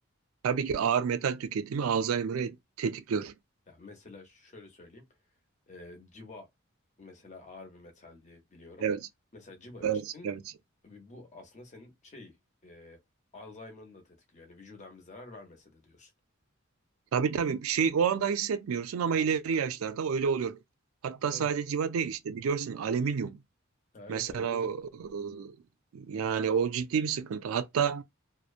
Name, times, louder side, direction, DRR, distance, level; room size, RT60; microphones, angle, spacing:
voice 1, 0.4-3.3 8.8-9.1 9.8-10.4 17.1-20.6 21.0-23.4 24.1-25.6 25.9-28.0, right 6 dB, 85° right, 0.4 m, -29 dB
voice 2, 3.7-5.0 5.7-6.5 7.0-8.9 9.3-9.9 10.1-10.3 10.8-12.3 12.6-13.0 13.3-16.1 21.3-21.5 23.9-24.7, left 2 dB, 35° left, 0.8 m, -49 dB
2.8 x 2.0 x 2.3 m
head